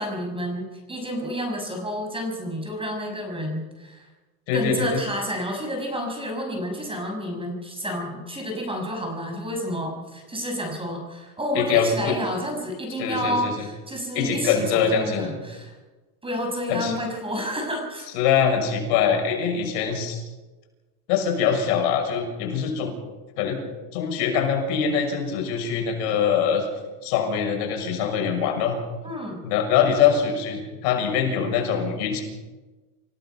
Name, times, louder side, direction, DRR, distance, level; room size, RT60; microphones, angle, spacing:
voice 1, 0.0-4.1 4.5-15.8 16.2-18.1 29.0-29.5, equal, 10° right, 2 dB, 6.5 m, -30 dB
voice 2, 4.5-5.0 11.5-12.1 13.0-13.7 14.1-15.4 16.7-17.0 18.1-20.2 21.1-22.9 23.4-23.6 23.9-26.6 27.0-28.8 29.4-32.2, left 7 dB, 70° left, 2 dB, 6.5 m, -23 dB
28.5 x 17.0 x 5.8 m, 1.2 s
supercardioid pair, 130°, 47 cm